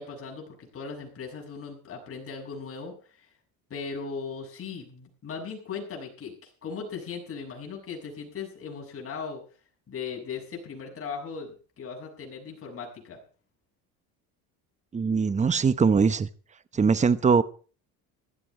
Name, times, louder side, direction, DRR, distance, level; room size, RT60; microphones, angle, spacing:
voice 1, 0.0-3.3 3.7-9.4 9.9-13.2, left 5 dB, 35° left, 6.7 m, -38 dB
voice 2, 14.9-16.3 16.7-17.4, right 5 dB, 20° right, 0.9 m, -21 dB
16.0 x 12.5 x 4.4 m
cardioid pair, 115°, 37 cm